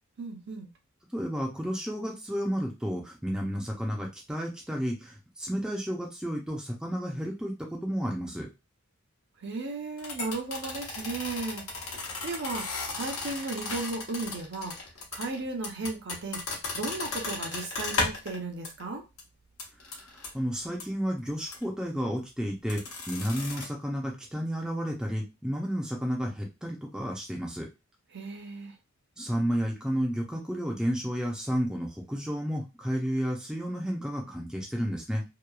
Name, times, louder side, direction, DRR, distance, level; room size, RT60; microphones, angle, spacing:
voice 1, 0.2-0.7 9.4-11.9 12.2-14.8 15.1-16.4 16.7-19.0 28.1-28.7, right 3 dB, 55° right, 3 dB, 0.6 m, -35 dB
voice 2, 1.1-8.5 19.9-27.7 29.2-35.2, equal, 5° right, -1 dB, 0.5 m, -32 dB
sound 1, 10.0-18.4 18.6-18.8 19.2-19.3 19.6-20.3 20.8-20.9 21.5-21.6 22.7-23.7, left 3 dB, 90° left, 1.0 m, -35 dB
2.9 x 2.2 x 2.3 m, 0.25 s
head